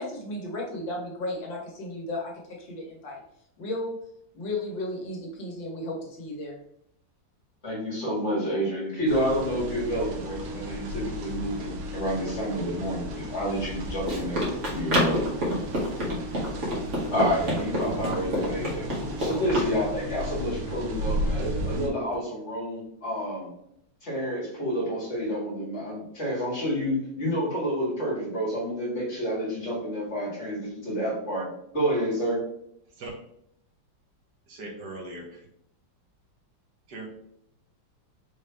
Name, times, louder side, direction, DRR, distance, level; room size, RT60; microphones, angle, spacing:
voice 1, 0.0-3.2 3.6-4.1 4.3-6.6, left 1 dB, 75° left, -2 dB, 1.8 m, -34 dB
voice 2, 7.6-14.5 14.7-15.3 17.1-23.5 24.0-32.4, equal, 35° left, -5 dB, 2.2 m, -29 dB
sound 1, 9.1-21.9, equal, 90° right, 1.6 m, -34 dB
Run, 13.5-19.7, equal, 40° right, 1.7 m, -29 dB
voice 3, 34.5-35.4 36.9-37.1, right 2 dB, 65° right, 0 dB, 1.5 m, -39 dB
4.9 x 3.1 x 3.3 m, 0.74 s
omnidirectional pair, 2.0 m